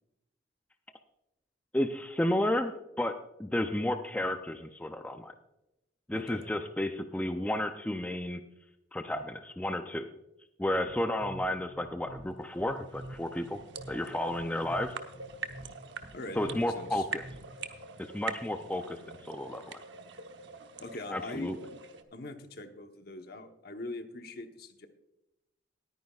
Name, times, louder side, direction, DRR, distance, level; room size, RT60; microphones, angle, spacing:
voice 1, 1.7-5.3 6.1-8.4 8.9-10.1 10.6-13.6 13.9-15.0 16.4-17.2 18.1-19.8 21.1-21.6, left 1 dB, 5° left, 6 dB, 0.4 m, -32 dB
voice 2, 6.1-6.4 16.1-17.1 20.8-21.5 22.1-24.9, left 2 dB, 50° left, 6 dB, 1.0 m, -42 dB
sound 1, 10.9-17.7, right 1 dB, 50° right, 1.3 m, -48 dB
sound 2, 12.2-22.0, right 5 dB, 70° right, 0.9 m, -44 dB
20.0 x 9.5 x 2.4 m, 0.92 s
head